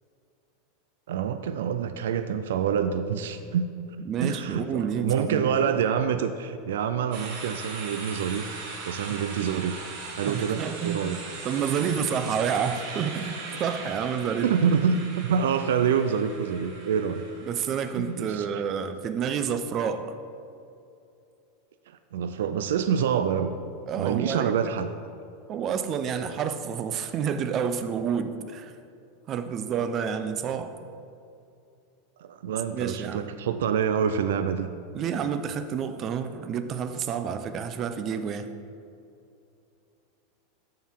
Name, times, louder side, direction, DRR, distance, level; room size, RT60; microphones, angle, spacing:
voice 1, 1.1-3.7 4.0-8.6 8.8-9.9 10.2-11.2 11.7-11.8 14.4-17.3 17.9-18.5 22.1-23.6 24.0-24.9 32.2-34.7, right 7 dB, 90° right, 9 dB, 0.3 m, -26 dB
voice 2, 4.1-5.6 10.3-11.0 11.4-14.5 17.4-20.1 23.9-24.5 25.5-28.7 29.3-30.7 32.7-33.3 34.9-38.5, right 7 dB, 30° right, 10 dB, 0.4 m, -29 dB
sound 1, 7.1-18.1, right 4 dB, 55° right, 1.6 m, -39 dB
13.0 x 4.5 x 3.6 m, 2.6 s
supercardioid pair, 160°, 0 cm